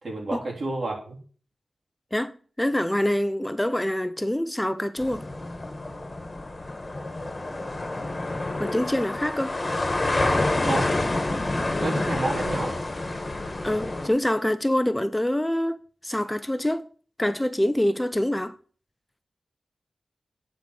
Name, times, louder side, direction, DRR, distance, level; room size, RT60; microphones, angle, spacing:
voice 1, 0.0-1.2 10.6-10.9 11.8-12.8, right 2 dB, 65° right, 3.2 m, -29 dB
voice 2, 2.1-5.3 8.6-9.5 13.6-16.8 17.2-18.5, left 1 dB, 10° left, 0.5 m, -25 dB
sound 1, 5.0-14.1, left 2 dB, 35° left, 1.5 m, -28 dB
9.2 x 4.7 x 6.3 m
cardioid pair, 65°, 0 cm